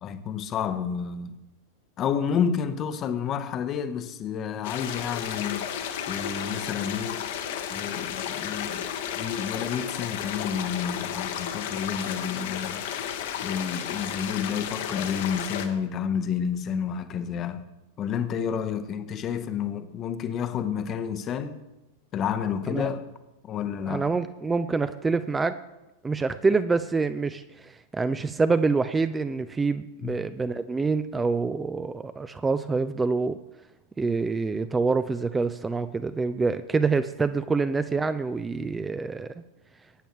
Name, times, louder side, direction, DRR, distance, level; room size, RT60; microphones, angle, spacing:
voice 1, 0.0-1.4 2.0-5.7 6.1-7.2 7.7-8.9 9.1-12.8 13.4-17.7 18.0-21.6 22.1-23.0 23.4-24.1 30.0-30.2, left 7 dB, 30° left, 0.8 m, -30 dB
sound 1, 4.6-15.7, left 9 dB, 55° left, 1.0 m, -33 dB
voice 2, 23.9-25.6 26.0-33.4 34.0-39.3, right 4 dB, 15° right, 0.4 m, -26 dB
18.0 x 9.0 x 3.0 m
figure-of-eight pair, 90°, 0 cm